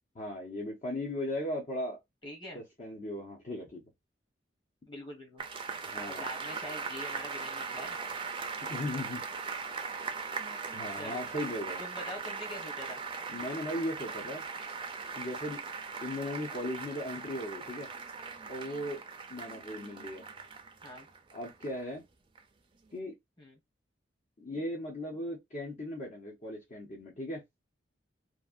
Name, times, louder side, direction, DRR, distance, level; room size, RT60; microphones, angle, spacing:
voice 1, 0.1-2.0 2.5-3.8 5.8-6.2 8.7-9.3 10.7-11.8 13.3-14.4 15.1-15.6 16.0-17.9 18.5-19.0 19.3-20.2 21.3-22.0 22.9-23.1 24.4-27.4, left 1 dB, 45° left, 0.9 m, -37 dB
voice 2, 2.2-2.6 4.9-5.4 6.1-8.0 11.0-11.2 11.8-13.0 20.8-21.1 23.4-23.6, left 1 dB, 25° left, 1.4 m, -44 dB
sound 1, 5.4-21.9 22.4-22.5, right 5 dB, 30° right, 0.5 m, -40 dB
3.2 x 2.4 x 2.5 m
head